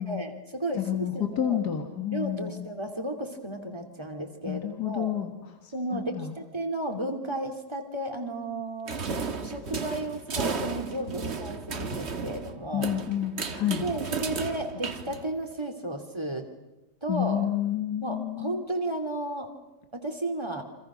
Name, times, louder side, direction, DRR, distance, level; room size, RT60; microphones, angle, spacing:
voice 1, 0.0-1.6 2.1-5.1 5.7-9.0 9.4-12.9 13.8-16.5 17.0-17.5 18.0-19.5 19.9-20.6, right 1 dB, 15° right, 3 dB, 2.8 m, -33 dB
voice 2, 0.7-2.7 4.4-5.4 5.6-6.3 12.7-13.8 17.1-18.6, left 11 dB, 70° left, 4 dB, 2.4 m, -30 dB
sound 1, 8.9-15.6, right 5 dB, 40° right, 1.5 m, -34 dB
29.0 x 26.0 x 6.3 m, 0.99 s
omnidirectional pair, 1.8 m